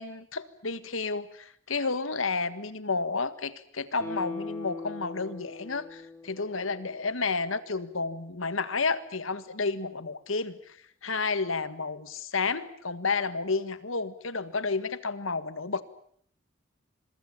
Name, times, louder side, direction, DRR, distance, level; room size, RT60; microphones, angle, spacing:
voice 1, 0.0-15.8, left 4 dB, 85° left, 14 dB, 1.7 m, -31 dB
Guitar, 4.0-7.3 7.6-7.7, left 3 dB, 10° left, 4.2 m, -40 dB
26.5 x 23.0 x 8.5 m, 0.62 s
head